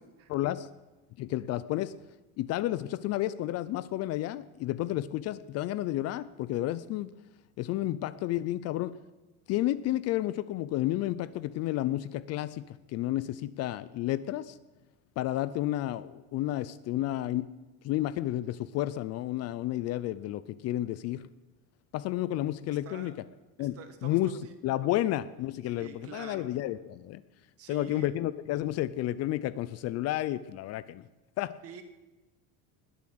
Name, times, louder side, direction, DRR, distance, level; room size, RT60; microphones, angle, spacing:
voice 1, 0.3-0.7 1.2-1.9 2.4-7.1 7.6-9.0 9.5-14.6 15.2-17.5 17.8-21.3 21.9-23.1 23.6-23.7 24.0-27.2 27.7-31.1 31.4-31.5, left 14 dB, 45° left, 16 dB, 0.5 m, -31 dB
voice 2, 22.7-23.1 23.6-24.5 25.6-26.5 27.6-28.1 31.6-31.8, right 7 dB, 40° right, 8 dB, 1.9 m, -47 dB
20.5 x 7.3 x 7.8 m, 1.2 s
cardioid pair, 160°, 37 cm